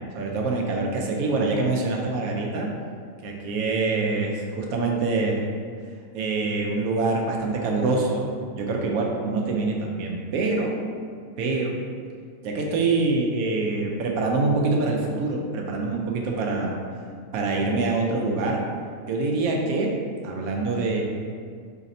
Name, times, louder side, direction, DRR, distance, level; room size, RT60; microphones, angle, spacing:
voice 1, 0.1-2.7 3.2-5.4 6.1-8.2 8.5-10.7 11.4-11.8 12.4-16.8 17.3-18.6 19.1-19.9 20.2-21.0, right 3 dB, 85° right, 0 dB, 1.0 m, -25 dB
4.1 x 3.2 x 2.6 m, 2.1 s
omnidirectional pair, 1.5 m